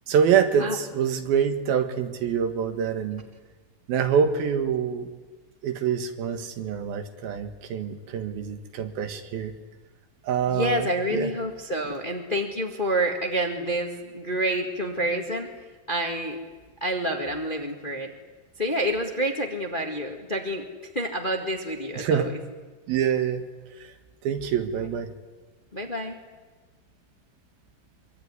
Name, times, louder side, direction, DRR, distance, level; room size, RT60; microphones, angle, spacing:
voice 1, 0.1-3.3 3.9-5.1 5.6-9.6 10.2-11.3 22.0-22.3 22.9-23.4 23.7-23.9 24.2-25.1, right 7 dB, 85° right, 8 dB, 3.5 m, -25 dB
voice 2, 10.5-15.5 15.9-16.4 16.8-18.1 18.6-20.6 20.9-22.4 24.8-24.9 25.7-26.2, right 1 dB, 20° left, 3 dB, 1.4 m, -28 dB
24.5 x 24.0 x 9.8 m, 1.3 s
omnidirectional pair, 4.2 m